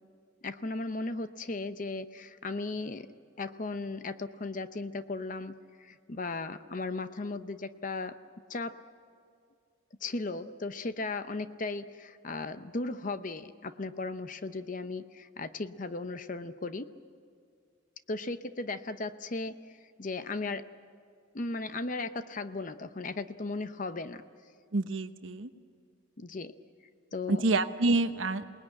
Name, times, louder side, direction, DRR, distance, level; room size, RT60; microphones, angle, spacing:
voice 1, 0.4-3.1 3.4-8.2 8.5-8.8 10.0-16.9 18.1-19.6 20.0-20.6 21.3-24.2 26.2-26.5 27.1-27.4, left 3 dB, 40° left, 11 dB, 0.7 m, -36 dB
voice 2, 24.7-25.5 27.3-28.4, right 2 dB, 85° right, 9 dB, 1.1 m, -27 dB
28.0 x 19.5 x 8.8 m, 2.2 s
head